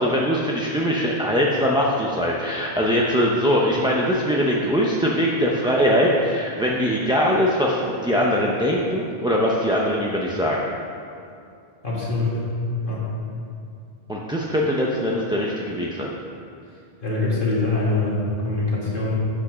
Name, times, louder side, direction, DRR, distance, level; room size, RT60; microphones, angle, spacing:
voice 1, 0.0-10.6 14.1-16.1, equal, 5° right, -3 dB, 0.5 m, -21 dB
voice 2, 11.8-12.4 12.8-13.1 17.0-19.2, left 2 dB, 55° left, -6 dB, 2.3 m, -23 dB
8.4 x 6.0 x 6.1 m, 2.5 s
omnidirectional pair, 1.1 m